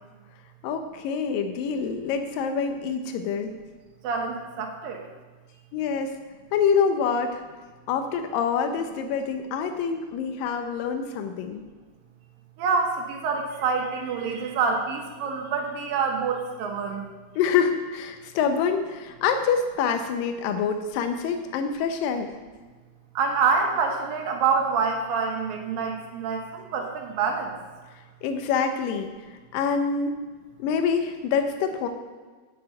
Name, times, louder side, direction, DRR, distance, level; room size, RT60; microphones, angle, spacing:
voice 1, 0.6-3.5 5.7-6.1 6.5-7.4 7.9-11.6 17.4-22.3 28.2-30.1 30.6-31.9, left 6 dB, 80° left, 6 dB, 2.5 m, -26 dB
voice 2, 4.0-5.0 12.6-17.0 23.1-27.5, right 5 dB, 85° right, 2 dB, 3.2 m, -26 dB
7.9 x 7.8 x 8.8 m, 1.4 s
omnidirectional pair, 4.0 m